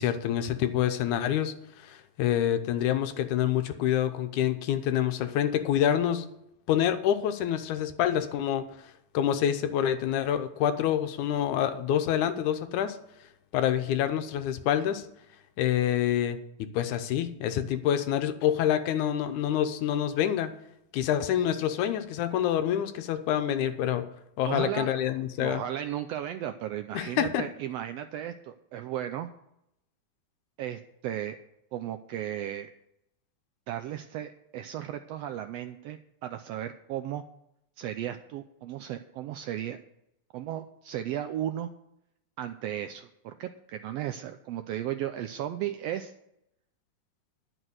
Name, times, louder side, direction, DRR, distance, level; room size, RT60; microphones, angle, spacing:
voice 1, 0.0-1.5 1.8-6.3 6.7-8.7 9.1-13.0 13.5-15.0 15.6-20.5 20.9-24.1 24.4-25.6 26.9-27.4, left 10 dB, 90° left, 9 dB, 2.3 m, -27 dB
voice 2, 24.4-25.0 25.4-29.3 30.6-31.4 31.7-32.7 33.7-37.2 37.8-39.8 40.3-41.7 42.4-46.1, right 11 dB, 80° right, 8 dB, 1.4 m, -35 dB
11.0 x 6.1 x 7.8 m, 0.81 s
omnidirectional pair, 3.4 m